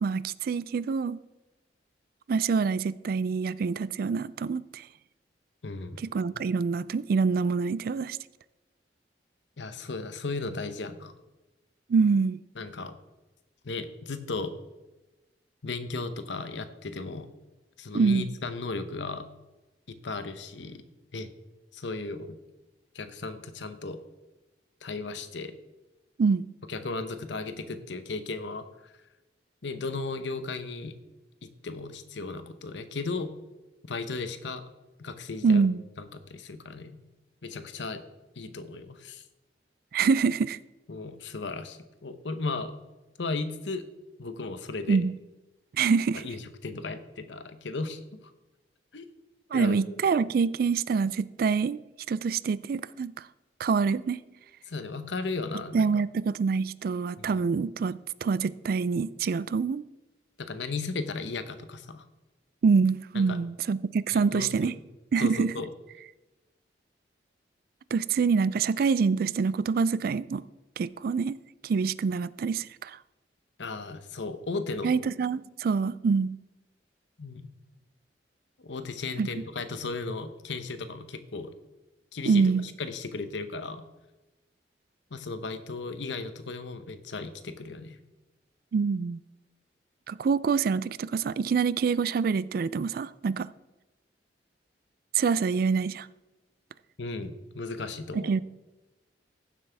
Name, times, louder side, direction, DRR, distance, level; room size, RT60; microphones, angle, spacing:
voice 1, 0.0-1.2 2.3-4.9 6.1-8.2 11.9-12.4 17.9-18.3 26.2-26.4 35.4-35.8 39.9-40.6 44.9-45.1 45.7-46.2 49.5-51.8 52.1-53.1 53.6-54.2 55.7-59.8 62.6-64.7 65.1-65.5 67.9-70.4 70.8-71.4 71.6-73.0 74.8-76.4 79.2-79.3 82.3-82.7 88.7-89.2 90.1-93.5 95.1-96.1 98.1-98.4, right 5 dB, 55° right, 0.3 m, -26 dB
voice 2, 5.6-6.0 9.6-11.1 12.6-13.0 13.6-14.5 15.6-17.3 17.8-19.3 19.9-20.8 21.1-21.3 21.7-22.4 22.9-24.0 24.8-25.5 26.7-28.9 29.6-31.0 31.4-33.3 33.9-34.6 35.0-35.7 36.0-37.0 37.4-38.0 38.4-39.2 40.9-42.7 43.2-43.9 44.2-45.0 46.1-48.2 48.9-49.1 49.5-49.8 54.7-55.9 57.2-57.5 60.4-62.0 63.1-63.4 64.1-64.7 65.2-65.7 73.6-75.0 77.2-77.5 78.6-81.5 82.1-83.8 85.1-88.0 97.0-98.3, left 3 dB, 85° left, 0.8 m, -36 dB
15.0 x 7.5 x 3.4 m
head